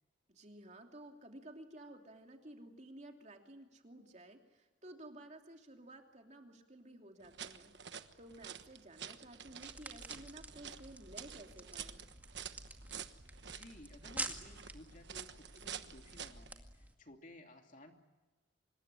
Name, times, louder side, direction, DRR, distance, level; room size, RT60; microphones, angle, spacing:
voice 1, 0.3-12.0, right 1 dB, 40° right, 3 dB, 3.0 m, -54 dB
sound 1, 7.2-16.5, right 8 dB, 70° right, 1.3 m, -49 dB
sound 2, 9.6-16.9, right 2 dB, 10° right, 2.1 m, -48 dB
voice 2, 13.5-17.9, left 1 dB, 45° left, 3 dB, 3.0 m, -56 dB
26.0 x 21.5 x 9.9 m, 1.2 s
head